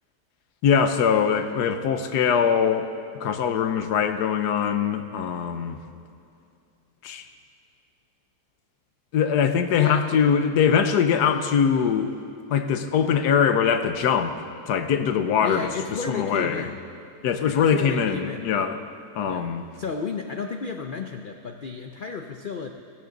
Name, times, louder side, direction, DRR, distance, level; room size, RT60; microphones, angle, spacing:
voice 1, 0.6-2.9 3.2-5.8 7.0-7.2 9.1-12.1 12.5-14.4 14.7-15.7 16.1-16.7 17.2-18.8 19.2-19.6, left 7 dB, 85° left, 9 dB, 1.3 m, -22 dB
voice 2, 9.8-10.1 15.4-16.9 17.6-18.6 19.2-19.4 19.8-22.7, left 5 dB, 60° left, 4 dB, 0.5 m, -33 dB
17.0 x 14.0 x 3.9 m, 2.4 s
omnidirectional pair, 1.7 m